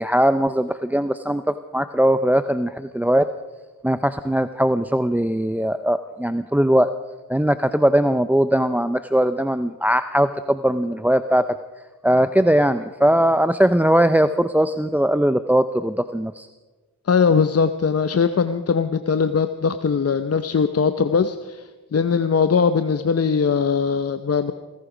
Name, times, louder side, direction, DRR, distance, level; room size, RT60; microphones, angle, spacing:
voice 1, 0.0-3.3 3.8-6.9 7.3-11.6 12.0-16.5, right 1 dB, 5° right, 11 dB, 0.5 m, -20 dB
voice 2, 17.1-24.5, left 5 dB, 45° left, 10 dB, 0.7 m, -20 dB
17.5 x 16.5 x 5.0 m, 1.2 s
cardioid pair, 55°, 36 cm